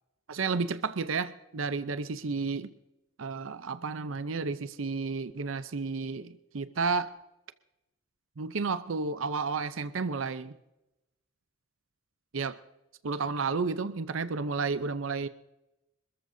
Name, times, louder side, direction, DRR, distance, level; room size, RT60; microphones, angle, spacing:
voice 1, 0.3-2.7 3.2-7.1 8.4-10.5 12.3-12.6 13.0-15.3, right 4 dB, 85° right, 13 dB, 0.7 m, -32 dB
26.5 x 14.0 x 2.7 m, 0.96 s
head